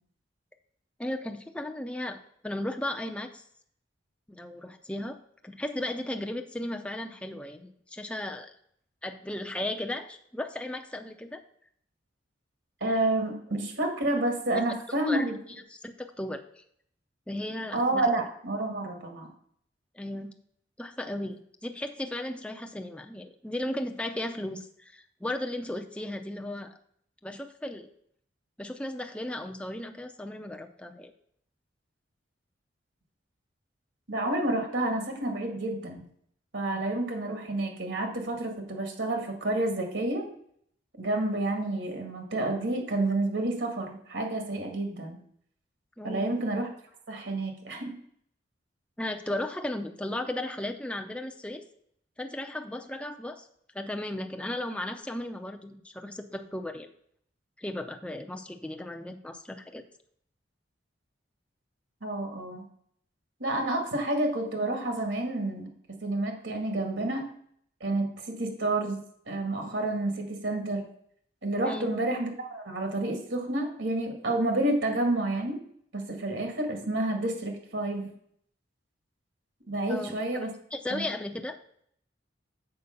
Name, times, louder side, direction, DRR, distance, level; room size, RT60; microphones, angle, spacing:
voice 1, 1.0-2.2 2.4-3.4 4.3-5.2 5.4-8.5 9.0-11.4 15.1-15.2 15.7-16.6 17.3-18.1 19.9-20.3 20.8-26.7 27.2-27.9 28.6-31.1 46.0-46.4 49.0-51.6 52.2-53.5 53.7-56.9 57.6-59.8 71.6-71.9 79.9-80.4 80.7-81.6, left 1 dB, 5° left, 4 dB, 0.5 m, -35 dB
voice 2, 12.8-15.3 17.7-19.3 34.1-36.1 36.5-40.3 41.0-45.2 46.0-46.7 47.1-47.9 62.0-62.6 63.4-65.7 66.0-67.3 67.8-69.0 69.3-70.8 71.4-75.6 75.9-78.1 79.7-80.5 80.9-81.1, right 2 dB, 75° right, 3 dB, 2.0 m, -29 dB
6.9 x 4.8 x 6.6 m, 0.66 s
head